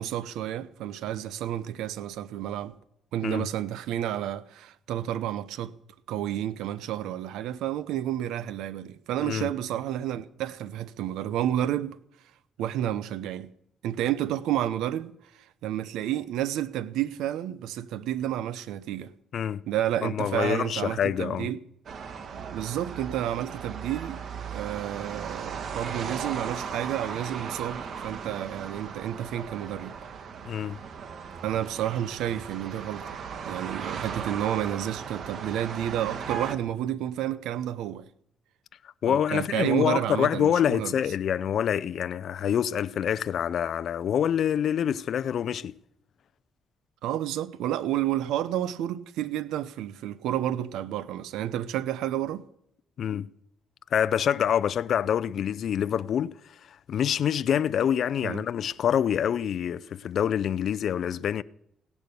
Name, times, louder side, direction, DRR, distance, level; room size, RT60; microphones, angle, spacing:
voice 1, 0.0-2.8 3.1-5.7 6.1-12.0 12.6-13.5 13.8-15.1 15.6-19.1 19.7-21.6 22.5-24.2 24.5-29.9 31.4-33.2 33.5-38.0 39.1-40.9 47.0-52.4 58.2-58.4, right 11 dB, 90° right, 0.8 m, -30 dB
voice 2, 20.0-21.5 30.5-30.8 39.0-45.7 53.0-53.3 53.9-61.4, left 9 dB, 65° left, 0.5 m, -26 dB
sound 1, 21.9-36.6, right 6 dB, 60° right, 1.5 m, -37 dB
17.0 x 10.5 x 6.9 m
cardioid pair, 90°, 0 cm